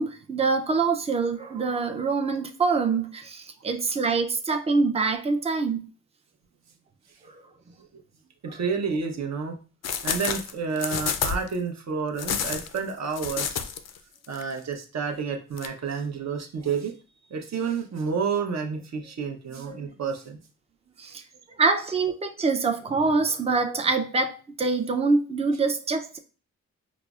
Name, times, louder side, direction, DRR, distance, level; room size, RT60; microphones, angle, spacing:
voice 1, 0.0-5.9 21.0-21.2 21.6-26.2, right 4 dB, 20° right, 0.5 m, -25 dB
voice 2, 8.4-9.5 10.0-13.7 14.3-16.9 17.3-20.4 21.0-21.2, right 5 dB, 50° right, 0.7 m, -30 dB
sound 1, 9.8-11.5 12.2-14.0 14.2-14.4 15.6-15.7, left 7 dB, 50° left, 0.4 m, -29 dB
4.8 x 2.0 x 2.3 m
cardioid pair, 60°, 34 cm